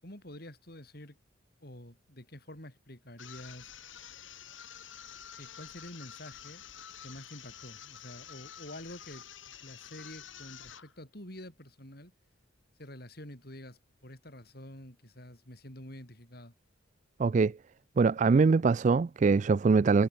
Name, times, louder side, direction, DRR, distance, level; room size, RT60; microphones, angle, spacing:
voice 1, 0.0-1.2 1.6-3.7 5.4-6.6 7.0-12.1 12.8-16.5, left 1 dB, 55° left, 6.6 m, -48 dB
sound 1, 3.2-10.9, left 9 dB, 85° left, 3.3 m, -49 dB
voice 2, 17.2-17.5 18.0-20.1, right 4 dB, 40° right, 0.3 m, -23 dB
head